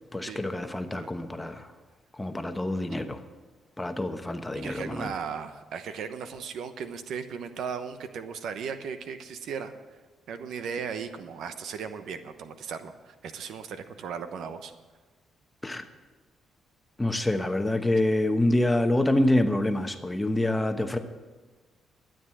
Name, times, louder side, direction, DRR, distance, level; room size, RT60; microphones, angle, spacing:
voice 1, 0.1-1.7 2.2-3.2 3.8-5.1 15.6-15.8 17.0-21.0, left 1 dB, 10° left, 7 dB, 1.1 m, -26 dB
voice 2, 4.5-9.7 10.3-14.7, right 6 dB, 75° right, 10 dB, 1.0 m, -36 dB
12.5 x 9.0 x 7.6 m, 1.3 s
cardioid pair, 85°, 0 cm